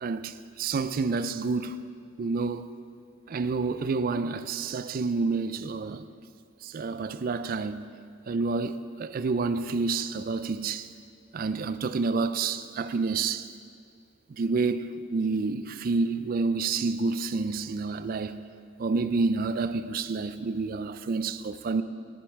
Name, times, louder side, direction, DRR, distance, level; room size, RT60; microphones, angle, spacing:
voice 1, 0.0-1.8 2.2-2.7 3.3-6.0 6.6-7.8 8.3-10.9 11.3-13.5 14.4-18.4 18.8-21.8, right 4 dB, 45° right, 0.3 m, -29 dB
10.0 x 8.2 x 4.6 m
head